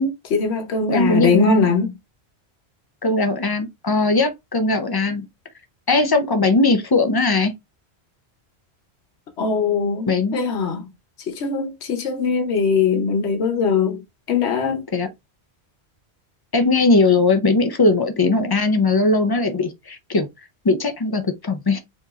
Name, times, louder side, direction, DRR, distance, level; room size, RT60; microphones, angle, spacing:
voice 1, 0.3-1.9 9.4-10.9 11.3-14.0 14.3-14.8, left 5 dB, 85° left, 1.0 m, -21 dB
voice 2, 0.9-1.7 3.0-5.3 5.9-7.5 10.1-10.4 14.9-15.1 16.5-20.3 20.6-21.8, left 3 dB, 40° left, 0.3 m, -19 dB
4.7 x 2.9 x 2.3 m
omnidirectional pair, 1.1 m